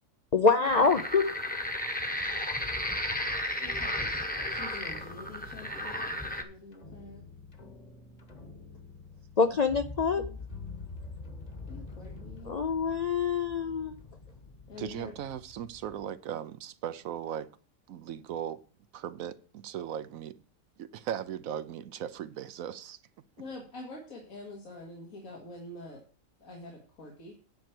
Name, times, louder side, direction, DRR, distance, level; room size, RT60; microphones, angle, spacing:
voice 1, 0.3-1.2 9.4-10.2 12.5-13.9, left 4 dB, 60° left, 8 dB, 0.4 m, -25 dB
sound 1, 0.6-6.4, left 1 dB, 10° left, 0.9 m, -33 dB
voice 2, 3.6-7.3 10.2-10.4 11.7-12.6 14.7-15.2 23.4-26.0 26.4-27.3, left 2 dB, 85° left, -1 dB, 2.2 m, -46 dB
sound 2, 4.8-16.0, left 3 dB, 30° left, 1.2 m, -46 dB
voice 3, 14.8-17.5 17.9-18.6 18.9-20.4 20.8-23.0, right 10 dB, 80° right, 14 dB, 1.1 m, -38 dB
9.5 x 4.5 x 7.7 m, 0.41 s
omnidirectional pair, 1.4 m